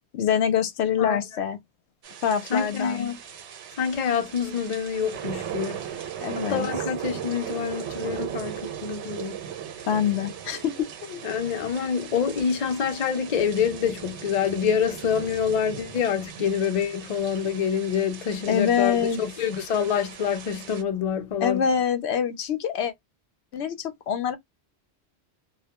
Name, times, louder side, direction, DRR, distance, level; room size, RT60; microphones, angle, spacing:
voice 1, 0.1-1.6 2.2-3.1 6.2-6.7 9.9-11.2 18.5-19.2 21.4-22.9 23.5-24.3, left 8 dB, 75° left, 0.8 m, -25 dB
sound 1, 2.0-20.8, right 9 dB, 85° right, 0.9 m, -38 dB
voice 2, 2.5-3.2 3.8-5.8 6.3-9.4 11.2-21.6, left 7 dB, 50° left, 0.5 m, -26 dB
2.3 x 2.1 x 2.8 m
omnidirectional pair, 1.1 m